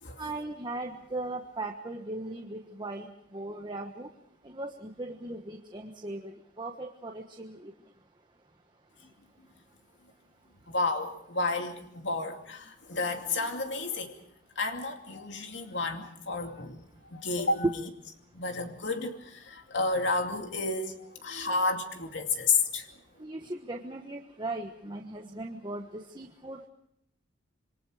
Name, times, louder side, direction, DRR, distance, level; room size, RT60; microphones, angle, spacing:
voice 1, 0.2-4.1 4.4-6.3 6.6-7.7 23.2-26.7, right 2 dB, 25° right, 3 dB, 1.3 m, -38 dB
voice 2, 10.7-14.2 14.6-16.8 17.1-17.7 18.3-20.9 21.2-22.9, left 3 dB, 65° left, 4 dB, 2.6 m, -31 dB
27.5 x 23.5 x 5.0 m, 0.72 s
head